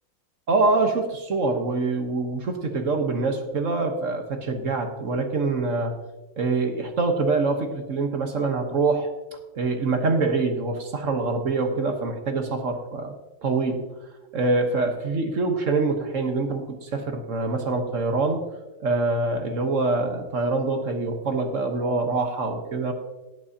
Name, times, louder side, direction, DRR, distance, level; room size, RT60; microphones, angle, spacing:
voice 1, 0.5-5.9 6.4-9.1 9.5-13.1 13.4-13.9 14.3-18.5 18.8-22.9, right 3 dB, 45° right, 4 dB, 1.2 m, -25 dB
18.0 x 8.7 x 2.8 m, 1.1 s
omnidirectional pair, 2.2 m